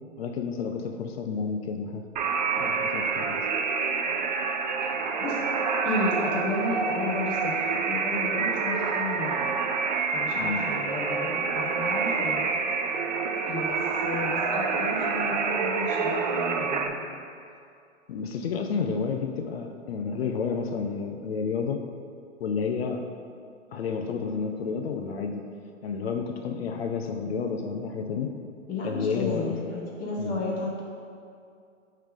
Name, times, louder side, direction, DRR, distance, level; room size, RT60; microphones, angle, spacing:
voice 1, 0.2-2.0 2.5-3.4 10.3-10.6 18.1-21.8 22.4-23.1 23.7-25.4 25.8-28.3 28.8-29.6 30.2-30.4, left 5 dB, 50° left, 4 dB, 0.6 m, -30 dB
sound 1, 2.2-16.9, right 5 dB, 35° right, 0.4 m, -27 dB
voice 2, 5.8-9.5 10.1-12.5 13.5-17.1 28.7-30.8, left 2 dB, 20° left, -3 dB, 1.0 m, -33 dB
8.5 x 3.3 x 3.7 m, 2.4 s
hypercardioid pair, 130°, 39 cm